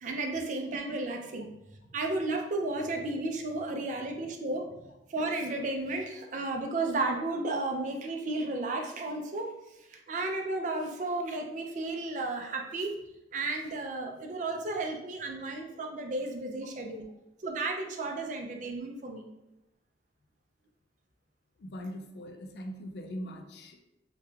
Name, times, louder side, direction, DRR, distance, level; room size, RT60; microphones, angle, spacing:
voice 1, 0.0-1.5 1.9-4.7 5.1-9.5 9.9-13.0 13.3-17.1 17.4-19.3, right 2 dB, 45° right, 3 dB, 0.3 m, -33 dB
voice 2, 21.6-23.8, equal, 65° left, 5 dB, 0.3 m, -41 dB
3.0 x 2.2 x 2.3 m, 0.92 s
head